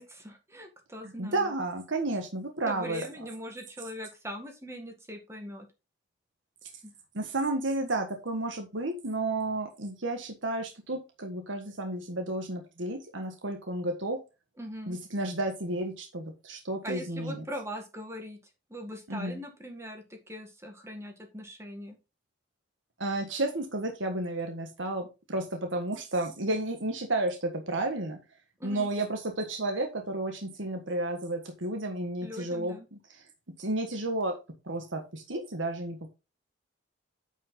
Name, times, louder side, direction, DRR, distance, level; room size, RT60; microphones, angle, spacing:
voice 1, 0.0-1.5 2.7-5.7 6.8-6.9 14.6-15.0 16.8-18.4 18.7-22.0 28.6-28.9 32.2-32.9, equal, 15° right, 4 dB, 1.8 m, -41 dB
voice 2, 1.0-3.1 7.1-14.2 14.9-17.4 19.1-19.4 23.0-28.2 28.6-32.8 33.1-33.2 33.6-34.4 34.6-36.1, right 2 dB, 75° right, 4 dB, 1.5 m, -32 dB
9.4 x 5.5 x 3.8 m, 0.27 s
head